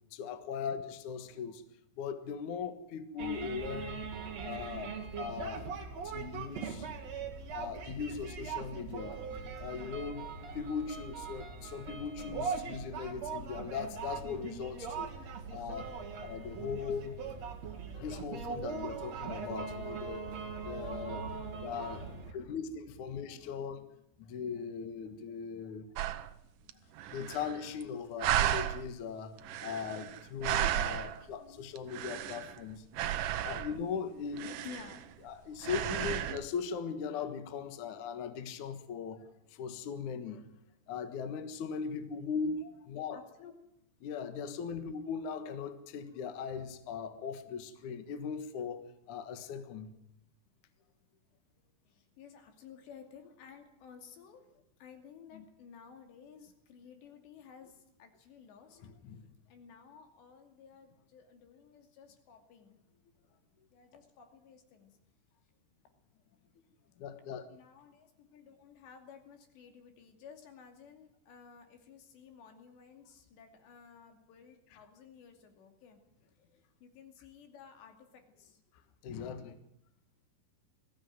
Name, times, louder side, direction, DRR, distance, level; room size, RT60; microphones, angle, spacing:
voice 1, 0.1-1.6 2.0-4.1 4.4-5.7 6.0-6.9 7.5-15.1 15.5-15.9 16.2-17.2 17.9-20.3 20.6-21.3 21.6-23.8 24.2-25.9 27.1-32.8 33.4-34.5 35.2-40.4 40.9-42.6 42.9-43.2 44.0-49.9 55.3-55.4 58.8-59.3 67.0-67.5 79.0-79.6, left 6 dB, 60° left, 2.5 m, -39 dB
sound 1, 3.2-22.3, right 5 dB, 45° right, 2.8 m, -41 dB
voice 2, 16.3-16.6 17.3-17.5 18.4-18.7 21.5-21.7 22.4-22.7 23.2-23.6 24.6-24.7 25.0-25.4 26.2-26.3 26.7-26.8 27.1-27.3 31.3-31.6 32.4-32.7 34.6-35.0 42.6-42.7 43.1-43.5 50.2-50.3 51.9-54.5 54.8-58.8 59.5-62.7 63.7-65.0 67.5-76.0 76.8-78.6, left 7 dB, 80° left, 4.8 m, -55 dB
sound 2, 26.0-26.3 26.7-26.8 27.0-27.8 28.2-28.9 29.4-31.3 31.8-32.6 32.9-33.8 34.4-35.3 35.6-36.4, right 12 dB, 75° right, 2.0 m, -34 dB
20.5 x 16.0 x 9.5 m
omnidirectional pair, 5.0 m